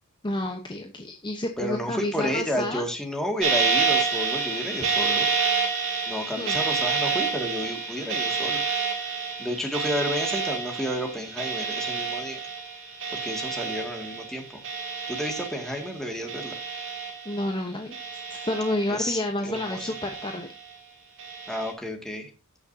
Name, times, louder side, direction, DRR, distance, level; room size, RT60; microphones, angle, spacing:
voice 1, 0.2-2.8 6.4-6.6 17.2-18.0 18.3-20.5, left 1 dB, 20° left, 3 dB, 1.0 m, -30 dB
voice 2, 1.6-5.3 6.1-8.6 9.4-12.4 13.2-14.6 15.1-16.5 18.9-19.9 21.5-22.3, equal, 5° left, 1 dB, 2.1 m, -31 dB
sound 1, 3.4-16.0 16.3-17.5 17.9-19.1 19.5-20.6 21.2-21.7, right 4 dB, 60° right, 2.6 m, -29 dB
18.0 x 6.6 x 2.8 m, 0.30 s
head